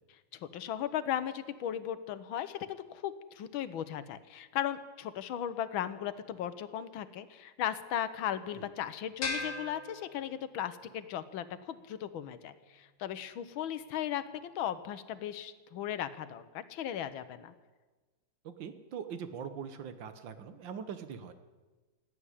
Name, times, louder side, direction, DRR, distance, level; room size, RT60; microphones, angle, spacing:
voice 1, 0.4-17.5, left 10 dB, 90° left, 13 dB, 1.7 m, -37 dB
sound 1, 9.2-10.7, left 3 dB, 60° left, 3.0 m, -38 dB
voice 2, 18.4-21.3, right 7 dB, 75° right, 10 dB, 1.8 m, -42 dB
16.5 x 8.8 x 9.9 m, 1.3 s
omnidirectional pair, 2.1 m